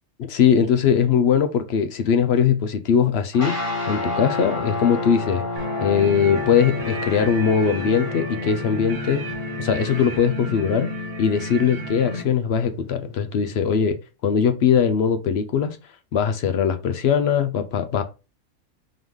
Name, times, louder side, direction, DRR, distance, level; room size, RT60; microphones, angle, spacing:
voice 1, 0.2-3.6 3.9-5.4 5.8-9.2 9.6-10.9 11.2-14.0 14.2-15.8 16.1-18.0, left 7 dB, 65° left, 0.7 m, -20 dB
sound 1, 3.3-13.8, left 3 dB, 40° left, 1.5 m, -32 dB
sound 2, 5.6-12.2, equal, 40° right, 0.9 m, -32 dB
3.8 x 3.6 x 3.1 m
omnidirectional pair, 1.4 m